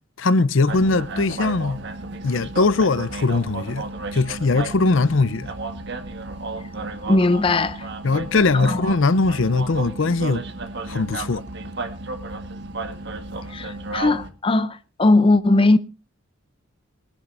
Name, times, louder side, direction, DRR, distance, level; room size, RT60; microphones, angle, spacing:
voice 1, 0.2-1.8 2.2-3.9 4.1-5.5 8.0-10.4 10.9-11.4, left 3 dB, 70° left, 0.6 m, -20 dB
sound 1, 0.7-14.3, right 2 dB, 55° right, 1.6 m, -33 dB
voice 2, 7.1-7.9 8.6-8.8 13.5-15.8, left 2 dB, 25° left, 0.5 m, -19 dB
22.0 x 11.5 x 2.6 m
head